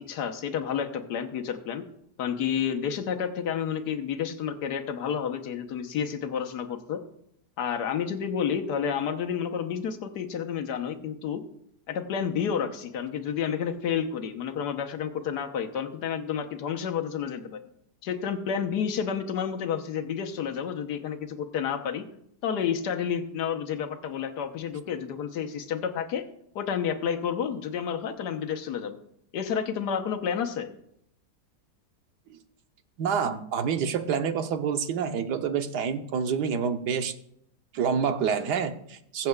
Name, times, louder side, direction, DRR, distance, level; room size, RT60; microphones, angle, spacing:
voice 1, 0.0-1.8 2.2-7.0 7.6-11.4 11.9-17.6 18.0-22.0 22.4-26.2 26.5-29.0 29.3-30.7, left 7 dB, 75° left, 5 dB, 1.5 m, -30 dB
voice 2, 33.0-37.1 37.7-39.3, right 7 dB, 75° right, 7 dB, 1.4 m, -27 dB
22.0 x 7.6 x 2.3 m, 0.73 s
omnidirectional pair, 1.8 m